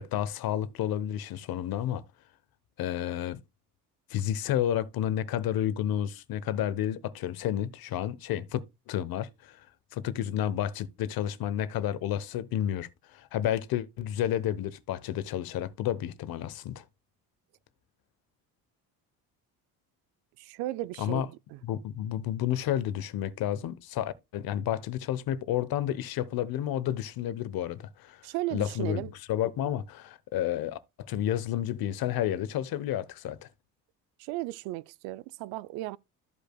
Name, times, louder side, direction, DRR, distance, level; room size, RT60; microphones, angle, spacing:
voice 1, 0.0-2.0 2.8-3.4 4.1-9.6 9.9-16.8 21.0-21.3 21.6-28.2 28.5-33.5, left 11 dB, 70° left, 1.0 m, -31 dB
voice 2, 20.4-21.6 28.2-29.1 34.2-36.0, right 17 dB, 85° right, 0.5 m, -35 dB
14.0 x 5.2 x 2.2 m
supercardioid pair, 70°, 37 cm